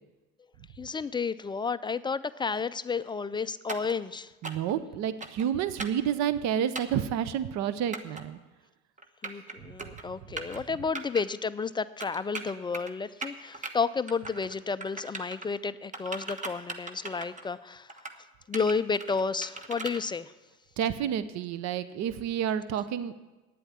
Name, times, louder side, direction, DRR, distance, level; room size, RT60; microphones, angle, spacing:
voice 1, 0.8-4.3 9.2-20.3, left 5 dB, 15° left, 14 dB, 0.3 m, -32 dB
sound 1, 3.7-4.0 4.4-4.7 5.2-5.5 5.8-6.0 6.8-7.0 7.9-8.2 9.0-9.5 9.8-10.0 10.4-10.6 11.0-11.2 12.0-12.9 13.2-13.7 14.1-14.6 14.8-15.5 15.9-17.5 17.9-18.2 18.5-20.0, right 3 dB, 25° right, 1.2 m, -38 dB
voice 2, 4.4-8.4 9.6-9.7 20.8-23.1, right 9 dB, 55° right, 13 dB, 0.8 m, -30 dB
9.4 x 7.9 x 9.3 m, 1.1 s
supercardioid pair, 90°, 33 cm